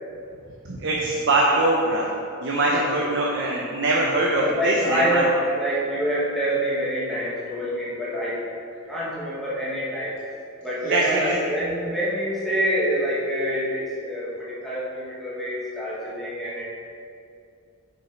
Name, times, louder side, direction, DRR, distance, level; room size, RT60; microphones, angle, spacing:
voice 1, 0.6-2.1 2.4-5.2 10.8-11.3, right 2 dB, 60° right, -3 dB, 0.7 m, -22 dB
voice 2, 4.3-8.4 8.9-10.2 10.6-16.7, equal, ahead, -9 dB, 1.3 m, -26 dB
5.8 x 5.4 x 4.4 m, 2.4 s
head